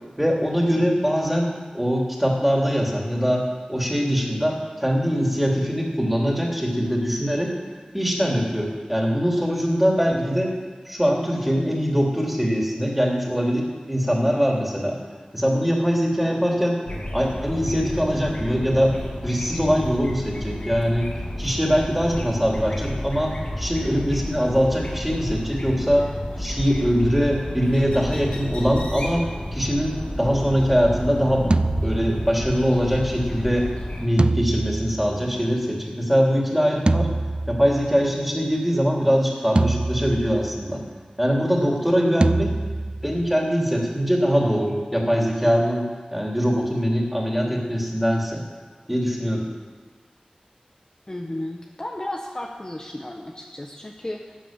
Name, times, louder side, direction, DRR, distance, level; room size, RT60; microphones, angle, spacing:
voice 1, 0.2-7.5 7.9-10.5 10.9-15.0 15.3-16.8 17.1-18.9 19.2-21.1 21.4-31.5 31.8-33.7 34.0-37.1 37.5-40.8 41.2-42.5 43.0-48.4 48.9-49.4, equal, 5° right, -1 dB, 3.0 m, -22 dB
sound 1, 16.9-34.1, left 1 dB, 55° left, 2.8 m, -31 dB
sound 2, 31.5-32.7 34.2-35.7 36.9-38.1 39.6-40.8 42.2-43.3, right 2 dB, 45° right, 0.4 m, -25 dB
voice 2, 42.0-42.4 51.1-54.4, left 1 dB, 30° left, 0 dB, 1.1 m, -34 dB
12.5 x 9.4 x 7.6 m, 1.4 s
wide cardioid pair, 55°, 2 cm